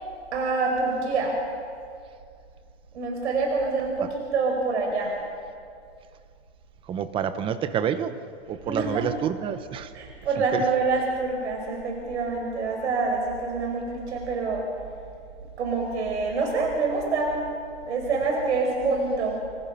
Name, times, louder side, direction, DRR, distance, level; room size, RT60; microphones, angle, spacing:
voice 1, 0.3-1.3 2.9-5.2 8.6-9.1 9.9-14.6 15.6-17.3 17.8-19.4, right 4 dB, 80° right, 1 dB, 5.2 m, -26 dB
voice 2, 6.9-8.1 8.5-9.9 10.5-10.6, right 8 dB, 15° right, 12 dB, 0.9 m, -28 dB
28.5 x 26.5 x 5.8 m, 2.3 s
hypercardioid pair, 160°, 34 cm